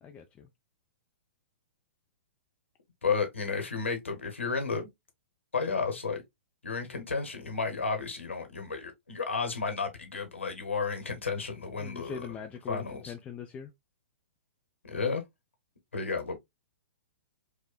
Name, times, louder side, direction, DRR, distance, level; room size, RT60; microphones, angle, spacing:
voice 1, 0.0-0.5 11.8-13.7, left 7 dB, 20° left, 0.4 m, -41 dB
voice 2, 3.0-4.9 5.5-6.2 6.6-12.3 12.7-13.1 14.8-15.2 15.9-16.4, left 4 dB, 80° left, 1.0 m, -32 dB
5.1 x 2.1 x 2.2 m
figure-of-eight pair, 110°, 7 cm